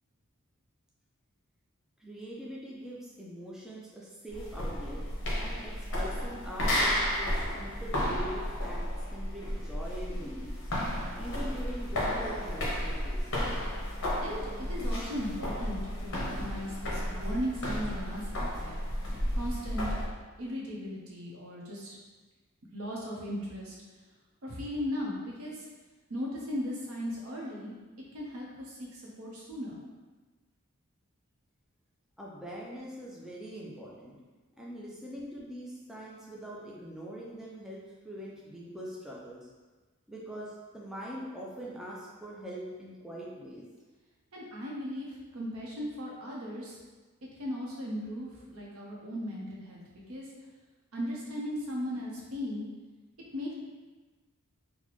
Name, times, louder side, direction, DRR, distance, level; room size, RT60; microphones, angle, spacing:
voice 1, 2.0-5.0 5.4-8.9 9.1-10.6 11.1-13.6 32.2-34.2 34.6-39.5 40.1-43.7, equal, 5° right, -5 dB, 0.4 m, -43 dB
sound 1, 4.3-20.1, equal, 60° left, 0.7 m, -33 dB
voice 2, 14.2-18.7 19.3-19.9 20.4-22.0 22.7-23.8 24.4-25.7 26.1-27.7 28.1-29.8 44.3-46.8 47.4-49.8 50.1-50.3 50.9-52.6 53.3-53.5, equal, 70° right, -3 dB, 0.8 m, -37 dB
4.0 x 2.2 x 3.0 m, 1.3 s
head